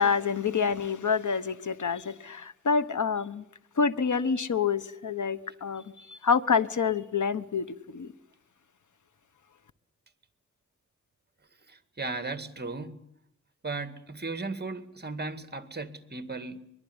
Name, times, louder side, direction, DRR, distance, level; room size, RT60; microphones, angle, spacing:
voice 1, 0.0-3.4 3.8-7.7 7.9-8.1, left 5 dB, 85° left, 1.2 m, -27 dB
voice 2, 11.7-13.1 13.6-16.6, right 3 dB, 35° right, 1.9 m, -36 dB
23.0 x 22.5 x 9.8 m
wide cardioid pair, 100°, 29 cm